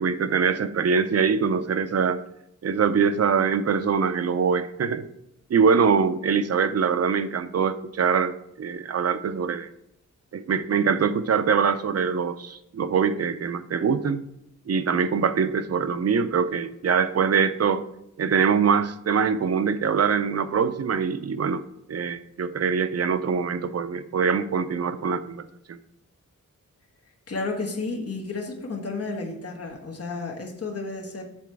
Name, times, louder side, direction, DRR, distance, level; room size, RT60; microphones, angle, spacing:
voice 1, 0.0-2.2 2.6-5.0 5.5-9.7 10.3-14.2 14.7-17.8 18.2-21.6 21.9-25.8, right 6 dB, 50° right, 12 dB, 0.5 m, -23 dB
voice 2, 27.3-31.2, left 3 dB, 45° left, 1 dB, 1.3 m, -32 dB
7.1 x 4.0 x 4.6 m, 0.78 s
wide cardioid pair, 110°, 32 cm